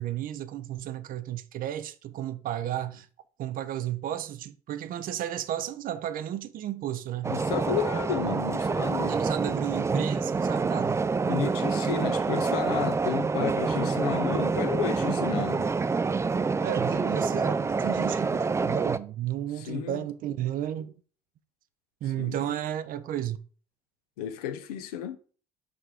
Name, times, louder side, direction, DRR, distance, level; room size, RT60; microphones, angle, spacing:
voice 1, 0.0-3.1 3.4-7.3 9.1-11.0 16.6-20.9 22.0-23.4, right 11 dB, 45° right, 0.7 m, -33 dB
sound 1, 7.2-19.0, right 4 dB, 15° right, 0.4 m, -27 dB
voice 2, 7.3-9.2 11.3-15.7 19.7-20.0 22.2-22.4 24.2-25.2, left 9 dB, 65° left, 1.0 m, -32 dB
6.0 x 5.2 x 5.0 m
figure-of-eight pair, 55°, 20 cm